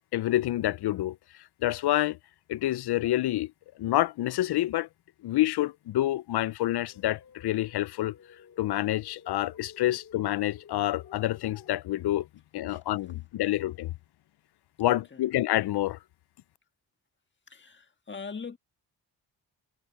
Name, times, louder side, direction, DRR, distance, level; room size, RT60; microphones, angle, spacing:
voice 1, 0.1-1.2 1.6-2.2 2.5-3.5 3.8-4.9 5.2-8.1 8.6-12.3 12.5-13.9 14.8-16.0, left 14 dB, 70° left, 0.5 m, -27 dB
sound 1, 6.8-11.7, left 7 dB, 45° left, 2.8 m, -53 dB
voice 2, 12.7-13.2 14.8-15.3 17.5-18.6, left 5 dB, 25° left, 1.7 m, -43 dB
cardioid pair, 110°, 41 cm